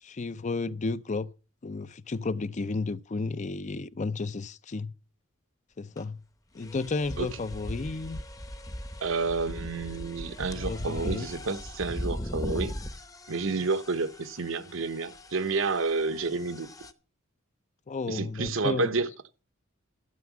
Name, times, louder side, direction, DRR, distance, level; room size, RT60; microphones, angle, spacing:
voice 1, 0.0-1.3 1.6-4.9 5.8-6.2 6.5-8.2 10.5-11.3 17.9-18.9, left 3 dB, 35° left, 0.5 m, -32 dB
sound 1, 6.0-6.1 6.6-16.9, equal, 15° left, 0.8 m, -39 dB
voice 2, 9.0-12.7 13.3-16.7 18.1-19.1, right 4 dB, 75° right, 0.9 m, -30 dB
13.0 x 8.2 x 6.0 m
head